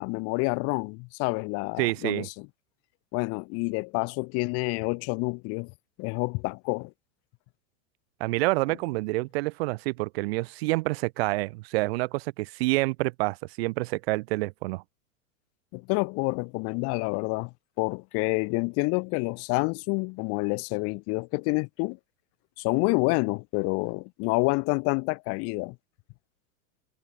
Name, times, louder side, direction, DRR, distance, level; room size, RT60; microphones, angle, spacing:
voice 1, 0.0-2.5 3.1-5.7 6.0-6.9 15.7-22.0 22.6-25.8, left 30 dB, 35° left, 4.0 m, -28 dB
voice 2, 1.8-2.3 8.2-14.8, right 22 dB, 50° right, 4.0 m, -28 dB
supercardioid pair, 165°, 39 cm